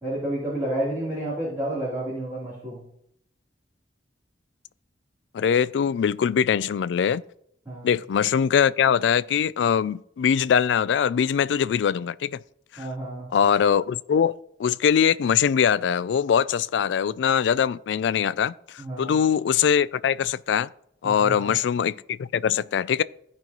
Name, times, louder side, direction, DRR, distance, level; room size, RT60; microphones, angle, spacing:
voice 1, 0.0-2.8 7.6-7.9 12.8-13.3 18.8-19.1 21.0-21.5, right 1 dB, 15° right, 3.4 m, -30 dB
voice 2, 5.3-7.2 7.8-12.4 12.7-12.9 13.3-20.7 21.0-23.0, left 8 dB, 75° left, 0.3 m, -22 dB
16.0 x 5.4 x 3.0 m
head